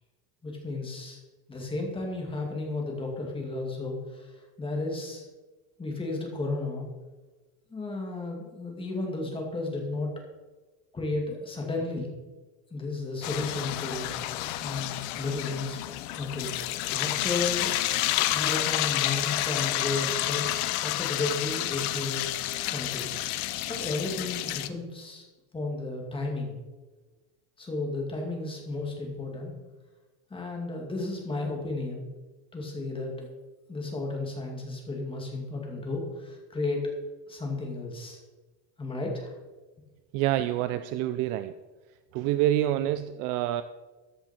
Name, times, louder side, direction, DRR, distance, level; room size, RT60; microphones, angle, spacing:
voice 1, 0.4-1.2 1.5-5.3 5.8-6.9 7.7-10.1 10.9-12.1 12.7-14.1 14.6-15.8 16.2-17.8 18.3-22.2 22.6-23.1 23.7-25.3 25.5-26.5 27.6-29.5 30.3-32.0 32.5-33.3 33.7-36.9 37.3-38.2 38.8-39.3, left 2 dB, 10° left, 0 dB, 2.2 m, -33 dB
sound 1, 13.2-24.7, left 15 dB, 70° left, 1.0 m, -30 dB
voice 2, 40.1-41.5 42.1-43.6, right 13 dB, 45° right, 12 dB, 0.4 m, -27 dB
14.0 x 10.0 x 4.4 m, 1.2 s
cardioid pair, 170°, 46 cm